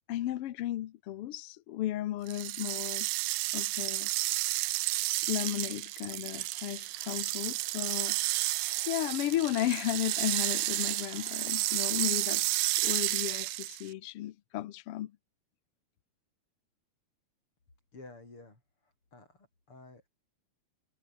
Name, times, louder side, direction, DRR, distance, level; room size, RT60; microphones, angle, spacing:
voice 1, 0.1-3.1 3.5-4.1 5.3-8.2 8.5-15.1, left 13 dB, 75° left, 1.3 m, -34 dB
sound 1, 2.3-13.9, right 20 dB, 85° right, 2.2 m, -31 dB
sound 2, 6.4-13.5, right 7 dB, 60° right, 3.6 m, -58 dB
voice 2, 17.9-20.1, left 2 dB, 40° left, 8.7 m, -52 dB
omnidirectional pair, 3.7 m